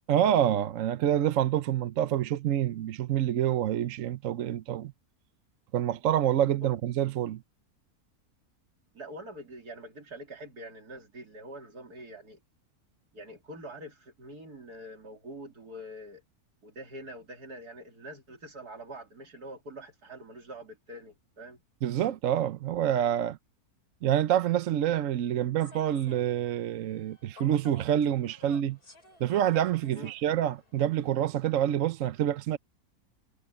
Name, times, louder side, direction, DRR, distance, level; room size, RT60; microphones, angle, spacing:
voice 1, 0.1-4.9 5.7-7.4 21.8-23.4 24.0-28.8 29.2-32.6, right 11 dB, 65° right, 1.0 m, -27 dB
voice 2, 8.9-12.4 13.1-16.2 16.6-21.6 29.9-30.1, right 1 dB, 85° right, 3.9 m, -45 dB
Human voice / Subway metro underground, 25.6-31.3, left 2 dB, 75° left, 7.0 m, -54 dB
omnidirectional pair, 1.6 m